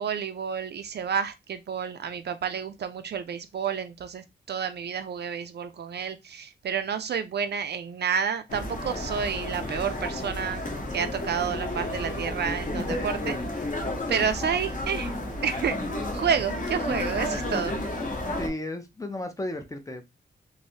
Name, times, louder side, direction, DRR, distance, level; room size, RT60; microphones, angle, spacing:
voice 1, 0.0-13.4 14.1-15.1 15.4-15.8 16.1-17.8, right 7 dB, 60° right, 0.4 m, -30 dB
sound 1, 8.5-18.5, left 1 dB, 40° left, 0.8 m, -32 dB
voice 2, 18.4-20.1, left 1 dB, 15° left, 0.4 m, -34 dB
3.1 x 2.6 x 2.7 m
wide cardioid pair, 160°, 20 cm